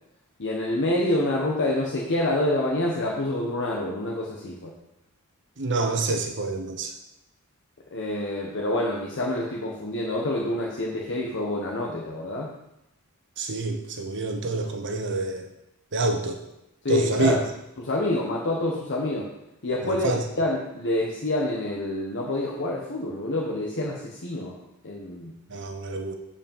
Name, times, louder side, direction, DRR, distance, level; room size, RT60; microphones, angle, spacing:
voice 1, 0.4-4.7 7.9-12.5 16.8-17.4 17.8-19.3 19.6-24.6 24.8-25.3, left 1 dB, 55° left, -2 dB, 1.2 m, -27 dB
voice 2, 5.6-6.9 13.4-15.5 15.9-16.4 16.9-17.4 19.8-20.2 25.5-26.2, right 2 dB, 55° right, 5 dB, 1.0 m, -27 dB
8.3 x 5.2 x 7.2 m, 0.86 s
head